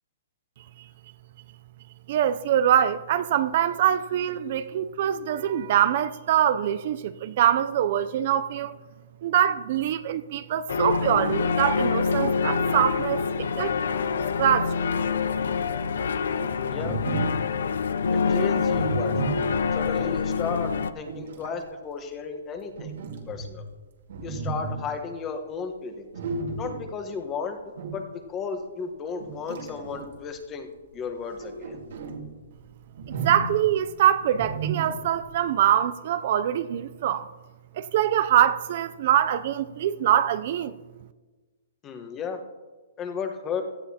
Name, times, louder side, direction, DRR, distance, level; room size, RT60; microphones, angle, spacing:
voice 1, 2.1-8.8 9.2-13.7 14.4-14.8 33.2-37.3 37.8-40.7, right 10 dB, 50° right, 0.5 m, -24 dB
sound 1, 10.7-20.9, left 5 dB, 80° left, 0.5 m, -26 dB
voice 2, 16.4-17.0 18.1-19.4 19.7-22.9 23.3-23.6 24.2-26.0 26.6-27.6 27.9-28.0 28.3-30.7 30.9-31.8 41.8-42.4 43.0-43.6, left 5 dB, 20° left, 1.2 m, -34 dB
sound 2, 16.7-17.5 18.5-19.9 20.6-21.6 22.8-23.7 24.1-24.9 26.1-26.9 27.8-28.1 29.2-30.3 31.1-32.3 32.9-33.7 34.3-35.2, right 3 dB, 70° right, 2.0 m, -33 dB
17.0 x 12.5 x 2.9 m
hypercardioid pair, 155°, 0 cm